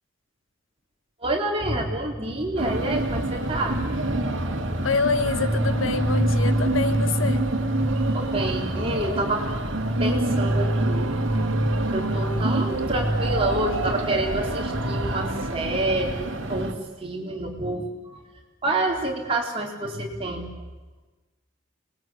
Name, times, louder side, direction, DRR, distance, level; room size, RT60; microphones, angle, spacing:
voice 1, 1.2-4.6 8.1-9.5 9.7-11.1 11.3-11.6 11.9-18.2 18.6-20.5, right 2 dB, 25° right, 0 dB, 4.2 m, -28 dB
sound 1, 2.6-16.7, right 1 dB, 65° right, 2.6 m, -25 dB
voice 2, 4.8-7.5, left 4 dB, 75° left, 11 dB, 1.3 m, -26 dB
26.5 x 21.0 x 9.0 m, 1.2 s
head